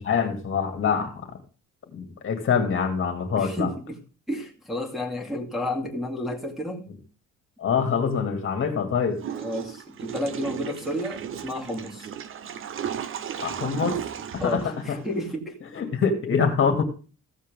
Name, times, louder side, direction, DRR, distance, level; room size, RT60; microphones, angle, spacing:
voice 1, 0.0-1.4 1.9-3.7 7.6-9.2 13.4-14.0 14.3-15.0 15.7-16.8, left 6 dB, 40° left, 5 dB, 2.3 m, -25 dB
voice 2, 3.4-4.0 4.3-6.9 9.4-12.1 14.4-15.6, left 1 dB, ahead, -2 dB, 2.4 m, -31 dB
Water / Toilet flush, 9.2-15.4, right 8 dB, 40° right, 0.7 m, -35 dB
15.5 x 7.6 x 3.5 m, 0.35 s
cardioid pair, 165°, 31 cm